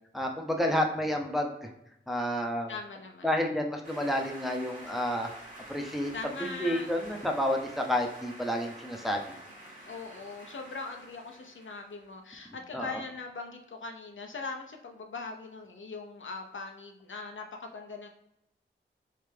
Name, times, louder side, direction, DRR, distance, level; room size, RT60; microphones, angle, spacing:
voice 1, 0.1-1.7 2.1-2.7 3.2-5.3 5.7-6.1 6.6-9.2 12.7-13.0, left 1 dB, ahead, 2 dB, 0.7 m, -30 dB
voice 2, 2.7-3.3 6.1-6.9 9.0-9.1 9.9-18.1, left 4 dB, 70° left, 3 dB, 0.6 m, -41 dB
sound 1, 3.8-12.1, right 1 dB, 40° right, 1.5 m, -48 dB
3.3 x 3.2 x 3.3 m, 0.83 s
wide cardioid pair, 45°, 21 cm